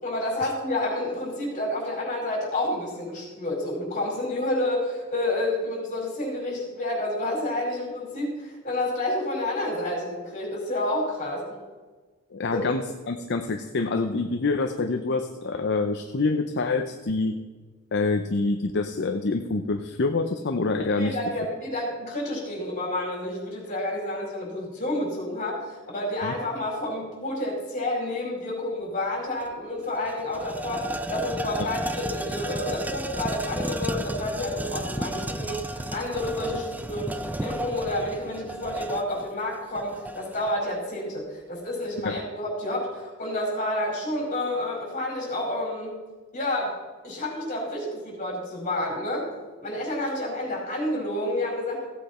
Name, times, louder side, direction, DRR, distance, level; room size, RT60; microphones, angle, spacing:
voice 1, 0.0-11.6 12.5-12.6 21.0-46.0 46.3-46.7 47.0-49.3 49.6-51.9, left 1 dB, 40° left, -2 dB, 4.7 m, -29 dB
voice 2, 12.3-17.4 17.9-21.2 26.2-26.4 42.0-42.2, left 3 dB, 55° left, 6 dB, 0.7 m, -26 dB
sound 1, 29.4-29.5 29.8-40.5, right 1 dB, 10° right, 0.4 m, -33 dB
16.0 x 8.5 x 4.3 m, 1.3 s
head